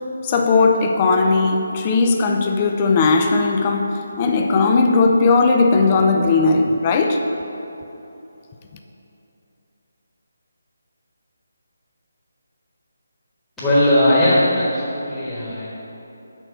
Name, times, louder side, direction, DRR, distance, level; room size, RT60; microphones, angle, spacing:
voice 1, 0.2-7.3, left 3 dB, 25° left, 4 dB, 0.5 m, -17 dB
voice 2, 13.6-15.7, left 1 dB, 5° left, -14 dB, 1.4 m, -18 dB
6.1 x 4.4 x 6.5 m, 3.0 s
figure-of-eight pair, 150°, 0 cm